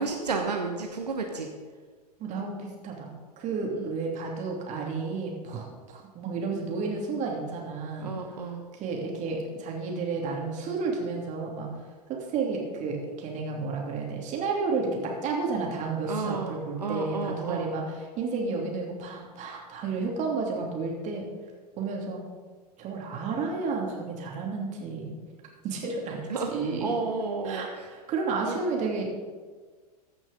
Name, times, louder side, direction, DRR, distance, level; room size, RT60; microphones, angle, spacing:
voice 1, 0.0-1.5 3.8-3.9 8.0-8.6 16.0-17.7 26.3-26.5 26.8-27.9 28.5-28.6, right 4 dB, 85° right, 2 dB, 1.2 m, -32 dB
voice 2, 2.2-3.1 3.4-8.1 8.7-11.7 12.1-21.3 21.8-22.2 22.8-25.3 25.6-26.2 26.5-26.9 27.4-29.1, right 4 dB, 35° right, 0 dB, 2.8 m, -31 dB
14.5 x 6.2 x 5.3 m, 1.5 s
hypercardioid pair, 95°, 20 cm